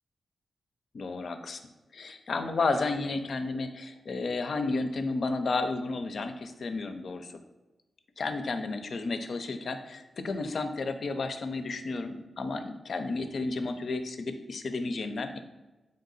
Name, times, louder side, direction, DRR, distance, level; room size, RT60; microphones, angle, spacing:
voice 1, 0.9-1.6 1.9-7.3 8.2-15.4, left 3 dB, 65° left, 8 dB, 0.4 m, -32 dB
3.6 x 2.7 x 3.9 m, 1.1 s
cardioid pair, 55°, 0 cm